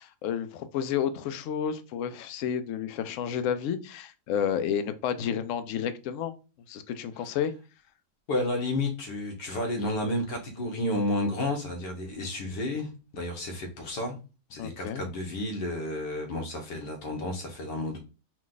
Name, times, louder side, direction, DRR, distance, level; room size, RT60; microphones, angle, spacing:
voice 1, 0.0-6.3 6.7-7.5 14.6-15.0, left 8 dB, 70° left, 0.8 m, -31 dB
voice 2, 8.3-14.2 14.5-18.0, left 1 dB, 90° left, 1.8 m, -31 dB
4.7 x 2.3 x 3.9 m
omnidirectional pair, 1.8 m